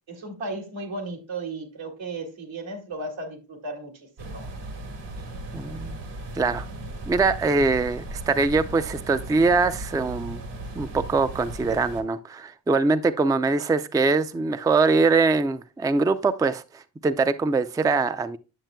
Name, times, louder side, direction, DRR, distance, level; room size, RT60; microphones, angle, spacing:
voice 1, 0.1-4.5, right 2 dB, 85° right, 2.3 m, -35 dB
sound 1, 4.2-12.0, right 2 dB, 65° right, 1.6 m, -37 dB
voice 2, 5.5-6.0 6.3-6.7 7.1-10.4 10.7-18.4, right 4 dB, 10° right, 0.3 m, -23 dB
9.0 x 7.2 x 2.2 m
wide cardioid pair, 105°, 45 cm